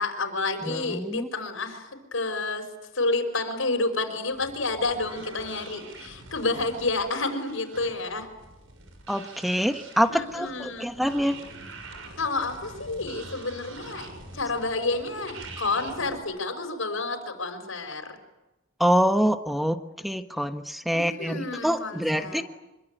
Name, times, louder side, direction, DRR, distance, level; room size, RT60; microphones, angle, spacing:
voice 1, 0.0-2.7 2.9-8.3 10.1-10.9 12.2-18.2 20.9-22.4, left 3 dB, 85° left, 5 dB, 5.7 m, -30 dB
voice 2, 0.6-1.3 9.1-11.4 18.8-22.4, equal, ahead, 7 dB, 1.3 m, -25 dB
sound 1, 4.3-16.2, right 3 dB, 90° right, 6.7 m, -45 dB
26.5 x 24.0 x 9.2 m, 0.98 s
head